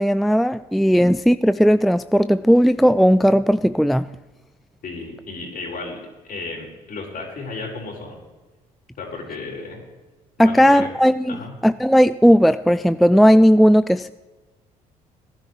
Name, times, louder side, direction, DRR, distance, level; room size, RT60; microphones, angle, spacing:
voice 1, 0.0-4.1 10.4-11.4 11.6-14.1, equal, ahead, 0.4 m, -16 dB
voice 2, 4.8-6.0 6.3-8.2 9.0-9.8 10.4-10.9 11.3-11.5, left 3 dB, 55° left, 4.8 m, -33 dB
18.5 x 11.5 x 3.2 m
hypercardioid pair, 55°, 18 cm